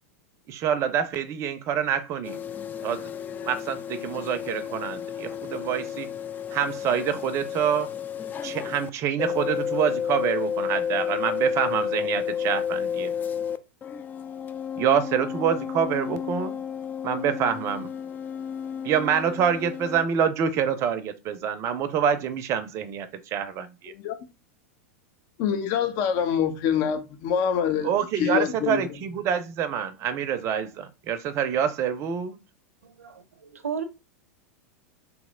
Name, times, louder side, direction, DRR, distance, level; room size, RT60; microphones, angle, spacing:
voice 1, 0.5-2.4 2.8-3.1 3.4-6.1 6.5-7.9 8.4-13.1 14.8-16.6 17.0-17.9 18.8-23.9 27.8-32.4, right 8 dB, 40° right, 0.5 m, -26 dB
sound 1, 2.2-8.9 9.2-13.6 13.8-20.1, left 8 dB, 25° left, 0.3 m, -32 dB
voice 2, 25.4-27.9 28.2-28.8, left 8 dB, 50° left, 0.7 m, -25 dB
voice 3, 32.8-33.8, right 7 dB, 85° right, 0.6 m, -34 dB
3.1 x 2.9 x 3.6 m
hypercardioid pair, 100°, 8 cm